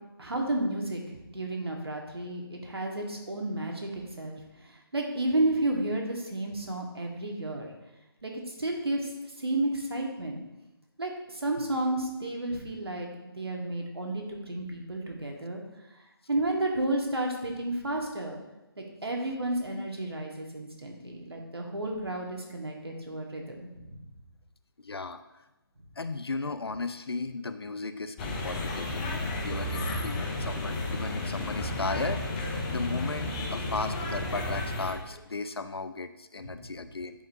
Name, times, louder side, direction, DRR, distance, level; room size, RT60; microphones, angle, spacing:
voice 1, 0.2-7.7 8.2-8.3 8.6-9.1 9.4-10.4 11.0-13.1 13.3-15.6 16.3-18.4 18.8-24.0 36.4-36.7, right 1 dB, 80° right, 1 dB, 1.7 m, -32 dB
voice 2, 24.8-25.2 26.0-29.1 29.4-37.3, left 3 dB, 80° left, 11 dB, 0.6 m, -36 dB
sound 1, 28.2-34.9, left 1 dB, 20° left, 0.7 m, -32 dB
11.0 x 5.0 x 2.7 m, 0.99 s
figure-of-eight pair, 150°, 13 cm